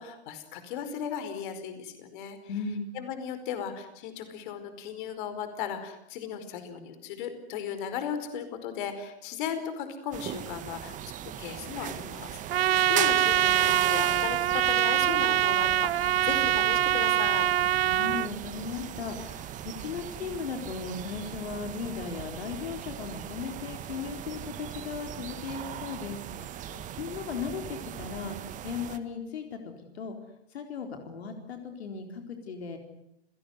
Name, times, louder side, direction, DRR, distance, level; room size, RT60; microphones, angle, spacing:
voice 1, 0.0-2.4 2.9-11.0 11.2-17.5 26.7-26.9, left 8 dB, 45° left, 10 dB, 4.9 m, -36 dB
voice 2, 2.5-2.9 17.8-30.2 30.5-32.8, left 5 dB, 70° left, 5 dB, 4.3 m, -37 dB
sound 1, 10.1-29.0, right 10 dB, 25° right, 1.7 m, -39 dB
Trumpet, 12.5-18.3, right 13 dB, 65° right, 0.9 m, -24 dB
30.0 x 17.5 x 9.6 m, 0.78 s
hypercardioid pair, 125°, 33 cm